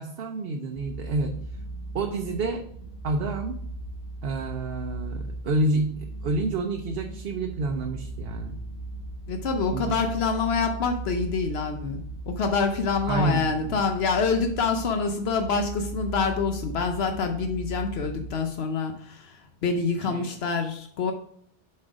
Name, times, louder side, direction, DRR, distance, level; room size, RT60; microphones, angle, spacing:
voice 1, 0.0-1.5 1.9-2.6 3.0-3.6 4.2-8.6 9.7-9.9 13.1-13.8 20.0-20.4, right 2 dB, 70° right, 3 dB, 0.9 m, -29 dB
sound 1, 0.7-18.5, right 2 dB, 60° left, 1.5 m, -38 dB
voice 2, 9.3-21.1, left 4 dB, 80° left, 5 dB, 1.0 m, -26 dB
7.4 x 4.3 x 4.9 m, 0.66 s
omnidirectional pair, 1.0 m